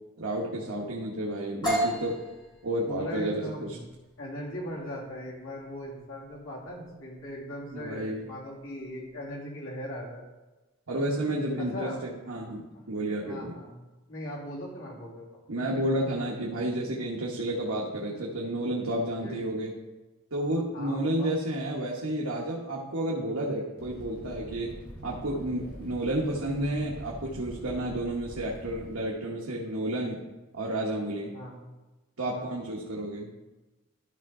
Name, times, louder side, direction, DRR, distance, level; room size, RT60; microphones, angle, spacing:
voice 1, 0.2-2.2 2.6-3.4 3.7-3.8 7.7-8.2 10.9-13.6 15.5-19.7 20.3-24.7 25.0-30.2 30.5-31.4 32.2-33.3, right 1 dB, 70° right, -2 dB, 1.1 m, -31 dB
sound 1, 1.6-9.3, equal, 20° left, 3.1 m, -36 dB
voice 2, 2.8-3.8 4.2-10.3 11.6-12.0 12.7-12.8 13.2-13.7 14.1-15.2 19.2-19.5 20.7-21.3 31.3-31.6 32.3-32.5, equal, 65° left, -4 dB, 2.4 m, -39 dB
Fire, 23.8-29.0, equal, 40° left, 3.2 m, -44 dB
12.5 x 5.6 x 3.7 m, 1.1 s
head